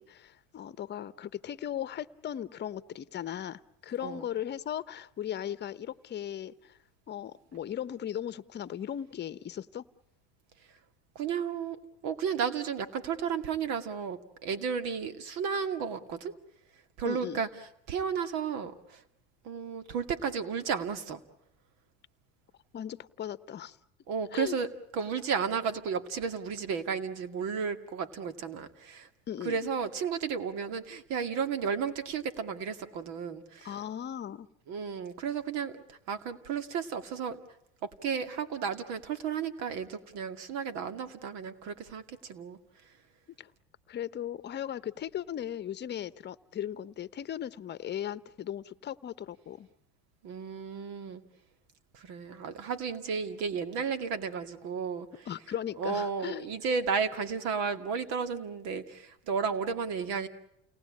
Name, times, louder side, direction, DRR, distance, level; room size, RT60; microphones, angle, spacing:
voice 1, 0.0-6.8 7.1-9.8 17.0-17.4 22.7-23.8 24.3-24.6 29.3-29.7 33.6-34.5 43.4-43.5 43.9-49.7 55.3-56.5, left 10 dB, 35° left, 16 dB, 1.0 m, -37 dB
voice 2, 11.2-16.3 17.0-17.5 17.9-19.0 19.4-21.2 24.1-24.7 24.9-29.1 29.4-33.7 34.7-35.8 36.1-37.4 37.8-42.6 50.2-51.2 51.9-55.1 55.8-60.3, right 6 dB, 65° right, 10 dB, 2.3 m, -33 dB
29.5 x 19.0 x 8.6 m, 0.80 s
supercardioid pair, 105°, 30 cm